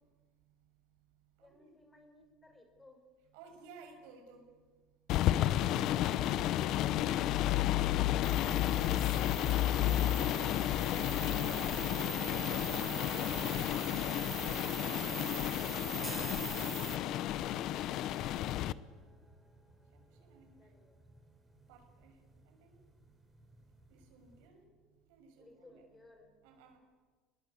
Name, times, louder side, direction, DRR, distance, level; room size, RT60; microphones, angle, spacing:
voice 1, 1.4-3.0 20.1-21.0 25.4-26.3, left 2 dB, 15° left, 6 dB, 4.6 m, -62 dB
voice 2, 3.3-4.4 5.5-5.9 8.3-8.7 9.1-12.1 12.6-15.6 17.2-18.1 20.2-20.5 21.7-22.1 22.5-22.8 23.9-24.7 25.1-25.8 26.4-26.8, right 4 dB, 80° right, 4 dB, 6.8 m, -59 dB
sound 1, 5.1-18.7, left 13 dB, 55° left, 0.8 m, -32 dB
sound 2, 8.2-17.0, right 6 dB, 30° right, 1.3 m, -43 dB
sound 3, 16.0-24.5, right 2 dB, 10° right, 4.0 m, -56 dB
26.5 x 21.0 x 8.5 m, 1.4 s
supercardioid pair, 120°, 0 cm